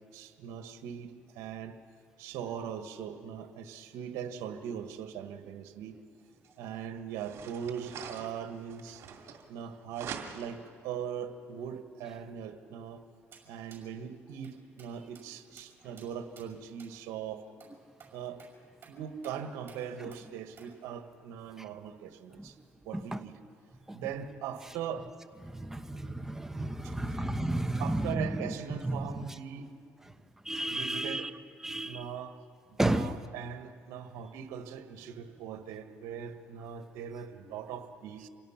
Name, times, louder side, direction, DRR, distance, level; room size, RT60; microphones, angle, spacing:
voice 1, 0.1-1.8 2.2-6.0 6.6-9.0 9.5-13.0 13.4-17.4 18.1-18.4 18.9-22.6 22.8-23.4 23.9-25.1 26.8-27.2 27.8-29.7 30.6-31.3 31.6-32.4 32.9-38.3, right 8 dB, 80° right, 1.6 m, -40 dB
sound 1, 6.4-6.5 7.1-9.6 9.9-10.7, right 7 dB, 65° right, 2.5 m, -44 dB
sound 2, 13.3-13.4 13.7-13.8 14.4-14.5 14.8-14.9 15.2-15.3 15.6-15.7 16.0-16.1 16.4-16.5 16.8-16.9 17.6-17.7 18.0-18.1 18.4-18.5 18.8-19.0 19.2-19.4 19.7-19.8 20.1-20.2 20.6-20.7, right 6 dB, 40° right, 6.2 m, -54 dB
voice 2, 25.5-29.1 30.4-31.3 31.6-32.0 32.8-33.1, right 1 dB, 10° right, 1.1 m, -32 dB
26.5 x 17.5 x 5.9 m
supercardioid pair, 85°, 5 cm